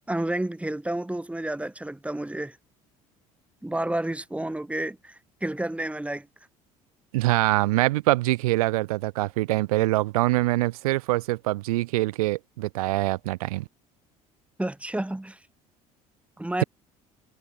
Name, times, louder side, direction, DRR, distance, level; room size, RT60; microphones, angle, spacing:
voice 1, 0.1-2.6 3.6-6.3 14.6-15.4 16.4-16.6, right 1 dB, 5° right, 1.9 m, -30 dB
voice 2, 7.1-13.6, right 19 dB, 80° right, 1.1 m, -24 dB
hypercardioid pair, 65°, 18 cm